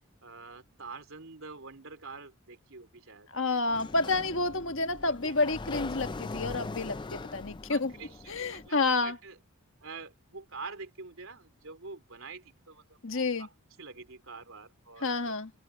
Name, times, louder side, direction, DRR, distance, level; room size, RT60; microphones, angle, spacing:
voice 1, 0.2-3.3 5.2-5.4 7.7-9.4 9.8-13.5 13.8-15.3, right 4 dB, 65° right, 3.0 m, -46 dB
voice 2, 3.3-7.9 8.3-9.2 13.0-13.5 15.0-15.5, left 3 dB, 60° left, 1.6 m, -29 dB
Sliding door, 3.7-8.7, left 3 dB, 20° left, 0.4 m, -41 dB
head